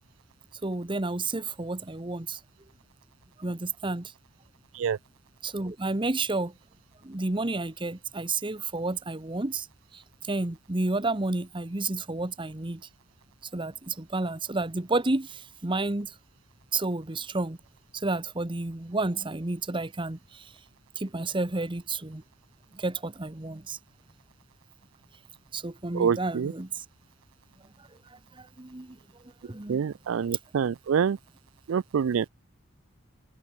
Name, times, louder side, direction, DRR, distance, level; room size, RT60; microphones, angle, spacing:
voice 1, 0.6-2.4 3.4-4.1 5.4-6.5 7.0-9.7 9.9-12.8 13.5-16.1 16.7-17.6 17.9-20.5 21.0-22.2 22.7-23.8 25.5-26.8 28.1-29.0 29.4-29.8, right 2 dB, 25° right, 1.0 m, -31 dB
voice 2, 25.9-26.5 29.7-31.2 31.7-32.3, right 7 dB, 75° right, 0.4 m, -26 dB
open air
head